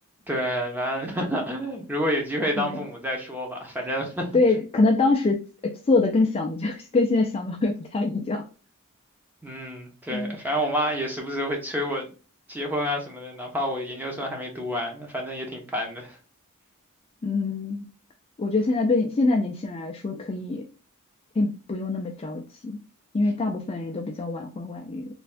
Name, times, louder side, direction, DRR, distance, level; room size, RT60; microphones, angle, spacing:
voice 1, 0.3-4.3 9.4-12.1 12.5-16.2, equal, 10° right, 0.7 m, -29 dB
voice 2, 4.3-8.4 10.1-10.4 17.2-17.9 18.4-20.7 21.4-22.8 23.1-25.1, left 3 dB, 25° left, 0.3 m, -24 dB
3.3 x 2.3 x 2.4 m
head